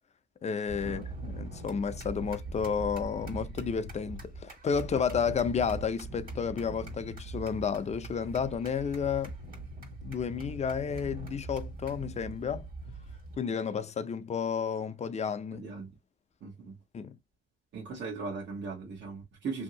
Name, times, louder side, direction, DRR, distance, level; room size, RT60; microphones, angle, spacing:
voice 1, 0.4-9.3 10.0-12.6 13.4-15.7 16.9-17.2, left 6 dB, 35° left, 0.5 m, -31 dB
sound 1, 0.7-13.4, right 2 dB, 45° right, 1.5 m, -42 dB
voice 2, 15.5-15.9 16.4-16.8 17.7-19.6, right 4 dB, 65° right, 1.0 m, -38 dB
2.8 x 2.7 x 2.7 m
cardioid pair, 90°, 20 cm